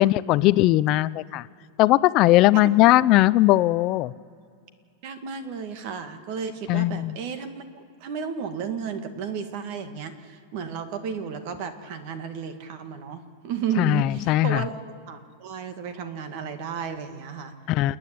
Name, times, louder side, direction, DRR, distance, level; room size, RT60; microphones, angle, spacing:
voice 1, 0.0-1.5 1.8-4.1 6.7-7.2 13.8-14.7 17.7-18.0, left 17 dB, 35° left, 18 dB, 0.4 m, -19 dB
voice 2, 5.0-14.8 15.1-17.5, right 6 dB, 45° right, 8 dB, 1.9 m, -33 dB
29.0 x 9.7 x 10.0 m, 2.3 s
supercardioid pair, 165°, 0 cm